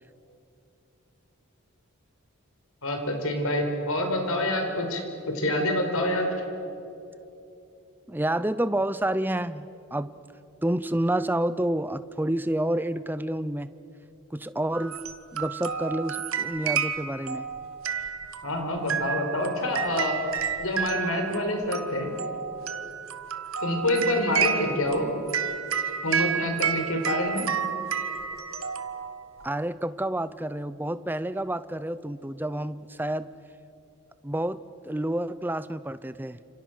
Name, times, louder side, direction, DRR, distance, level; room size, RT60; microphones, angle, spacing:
voice 1, 2.8-6.3 18.4-20.2 20.6-22.1 23.6-25.1 26.0-27.4, left 1 dB, 75° left, 4 dB, 4.6 m, -27 dB
voice 2, 8.1-10.1 10.6-13.7 14.3-15.0 15.3-17.5 29.4-33.3 34.2-34.6 34.9-36.4, right 1 dB, 10° right, 14 dB, 0.5 m, -29 dB
sound 1, 14.7-29.5, right 7 dB, 70° right, 1.3 m, -31 dB
29.5 x 27.5 x 6.4 m, 2.8 s
head